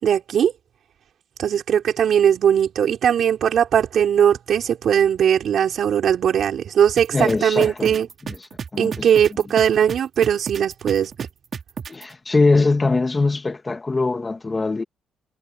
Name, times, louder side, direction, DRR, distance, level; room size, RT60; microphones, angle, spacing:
voice 1, 0.0-0.5 1.4-8.1 8.8-11.1, right 9 dB, 65° right, 4.7 m, -19 dB
sound 1, 7.0-12.0, right 6 dB, 45° right, 4.4 m, -31 dB
voice 2, 7.1-8.4 8.7-9.1 11.9-14.8, left 3 dB, 25° left, 1.9 m, -22 dB
cardioid pair, 90°, 0 cm